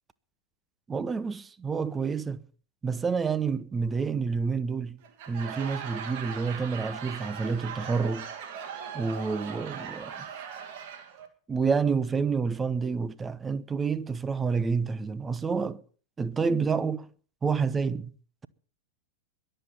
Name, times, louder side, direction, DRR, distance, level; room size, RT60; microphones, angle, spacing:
voice 1, 0.9-2.5 2.8-5.0 5.3-8.3 8.9-10.3 11.5-15.8 16.2-17.1 17.4-18.1, right 5 dB, 15° right, 0.9 m, -28 dB
Laughter / Crowd, 5.0-11.3, right 7 dB, 45° right, 2.6 m, -39 dB
22.5 x 7.9 x 5.8 m
figure-of-eight pair, 90°, 0 cm